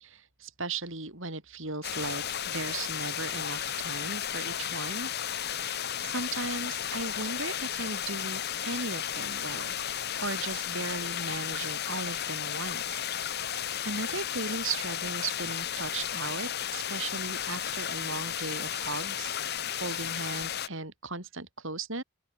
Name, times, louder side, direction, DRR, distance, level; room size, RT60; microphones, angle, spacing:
voice 1, 0.0-9.8 10.2-13.0 13.8-22.0, right 3 dB, 60° right, 5.2 m, -37 dB
sound 1, 1.8-20.7, left 9 dB, 45° left, 1.0 m, -34 dB
open air
head